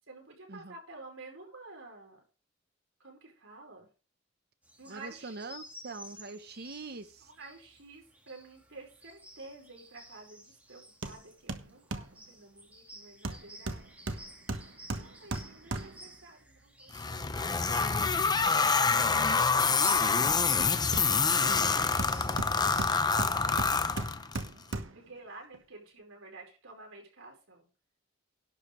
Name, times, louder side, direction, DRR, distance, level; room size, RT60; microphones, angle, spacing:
voice 1, 0.1-2.2 3.0-3.9 4.8-5.6 6.8-13.9 15.0-19.7 20.5-23.5 24.9-27.7, right 3 dB, 85° right, 5.2 m, -51 dB
sound 1, 4.6-23.0, right 1 dB, 10° right, 2.2 m, -53 dB
voice 2, 4.9-7.3, right 3 dB, 55° right, 1.1 m, -43 dB
Hammer, 11.0-11.2 11.5-12.2 13.2-16.1 19.9-21.4 22.0-25.1 25.5-25.6, right 2 dB, 70° right, 1.4 m, -38 dB
sound 2, 16.9-24.5, left 4 dB, 20° left, 0.6 m, -26 dB
11.5 x 5.2 x 6.7 m
head